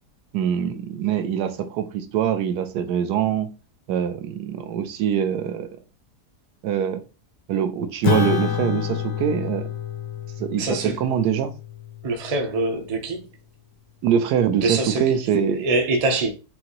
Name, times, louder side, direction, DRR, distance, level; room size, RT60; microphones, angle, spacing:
voice 1, 0.3-3.5 3.9-5.7 6.6-7.0 7.5-9.7 10.4-11.5 14.0-15.6, right 8 dB, 80° right, 1.2 m, -23 dB
Acoustic guitar / Strum, 8.0-12.8, left 8 dB, 80° left, 1.2 m, -28 dB
voice 2, 10.6-11.0 12.0-13.3 14.6-15.2 15.5-16.3, right 2 dB, 45° right, 0.5 m, -24 dB
5.7 x 2.6 x 2.9 m
omnidirectional pair, 1.7 m